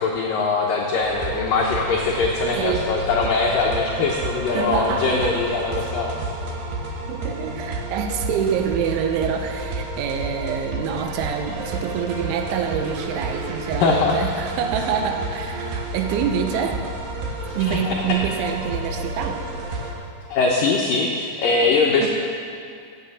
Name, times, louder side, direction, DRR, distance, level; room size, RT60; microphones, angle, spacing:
voice 1, 0.0-6.3 13.8-14.2 17.6-18.2 20.3-22.1, left 4 dB, 85° left, -1 dB, 1.9 m, -22 dB
sound 1, 1.0-19.9, right 2 dB, 60° right, 2.7 m, -30 dB
voice 2, 2.5-2.9 4.5-5.4 5.7-5.9 7.1-16.8 17.5-19.4 22.0-22.1, right 7 dB, 90° right, 5 dB, 3.3 m, -26 dB
16.0 x 8.6 x 7.3 m, 2.3 s
omnidirectional pair, 5.5 m